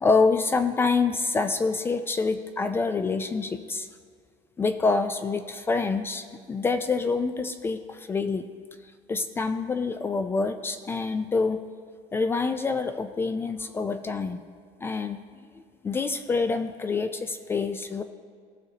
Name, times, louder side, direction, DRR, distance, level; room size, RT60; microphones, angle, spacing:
voice 1, 0.0-3.9 4.6-8.4 9.1-11.6 12.1-14.4 14.8-15.2 15.8-18.0, left 4 dB, 15° left, 9 dB, 0.3 m, -26 dB
16.5 x 6.5 x 2.8 m, 2.1 s
cardioid pair, 150°, 15 cm